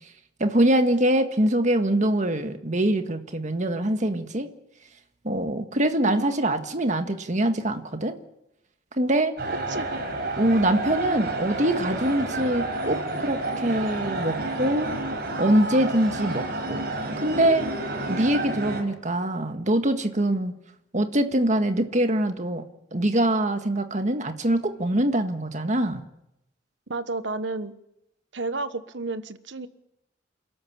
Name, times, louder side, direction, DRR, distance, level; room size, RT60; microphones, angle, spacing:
voice 1, 0.4-4.5 5.2-8.2 9.0-9.4 9.8-9.9 10.4-14.9 15.4-16.8 17.2-17.7 18.1-20.5 20.9-22.6 22.9-26.0, right 1 dB, 40° right, 7 dB, 1.7 m, -24 dB
voice 2, 6.0-6.4 9.7-10.0 26.9-27.7 28.3-29.7, right 3 dB, 80° right, 12 dB, 1.3 m, -32 dB
sound 1, 9.4-18.8, right 2 dB, 60° right, 5.6 m, -30 dB
28.5 x 13.0 x 8.7 m, 0.86 s
head